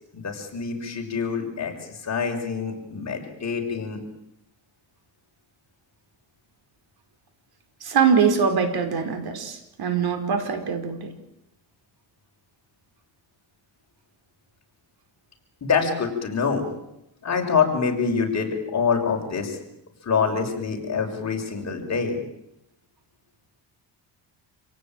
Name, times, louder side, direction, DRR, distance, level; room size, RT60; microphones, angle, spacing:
voice 1, 0.1-4.0 15.6-16.6 17.2-19.6 20.0-22.2, left 5 dB, 40° left, 2 dB, 6.1 m, -25 dB
voice 2, 7.8-11.1, right 6 dB, 55° right, 7 dB, 4.8 m, -23 dB
27.5 x 17.5 x 9.2 m, 0.84 s
cardioid pair, 125°, 43 cm